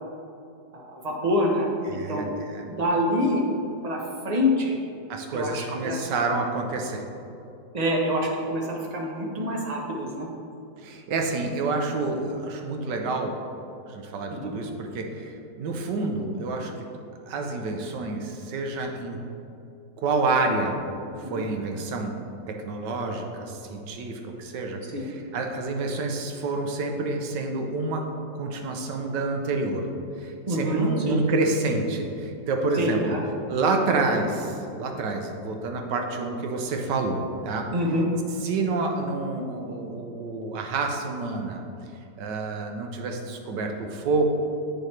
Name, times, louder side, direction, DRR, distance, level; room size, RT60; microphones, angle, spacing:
voice 1, 0.7-2.3 2.6-3.4 3.8-4.8 5.3-6.1 7.7-10.3 14.3-14.5 21.2-21.5 24.9-25.1 30.5-31.2 32.7-33.2 37.7-38.0, equal, 30° right, -1 dB, 0.7 m, -26 dB
voice 2, 1.8-2.7 5.1-7.1 10.8-13.4 13.9-16.7 17.3-19.2 20.0-20.8 21.2-22.1 22.5-28.0 28.4-29.9 30.2-33.1 33.5-37.7 38.4-41.6 42.2-44.3, right 3 dB, 75° right, 3 dB, 1.4 m, -28 dB
8.3 x 6.5 x 3.2 m, 2.6 s
omnidirectional pair, 1.9 m